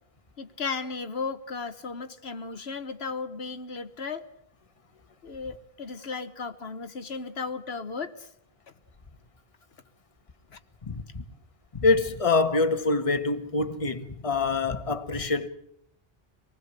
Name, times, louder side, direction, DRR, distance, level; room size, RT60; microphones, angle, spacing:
voice 1, 0.4-4.2 5.2-8.3 10.5-10.6, left 4 dB, 80° left, 1.5 m, -35 dB
voice 2, 10.9-11.2 11.7-15.5, left 3 dB, 35° left, 1.4 m, -25 dB
25.5 x 19.5 x 8.2 m
omnidirectional pair, 1.0 m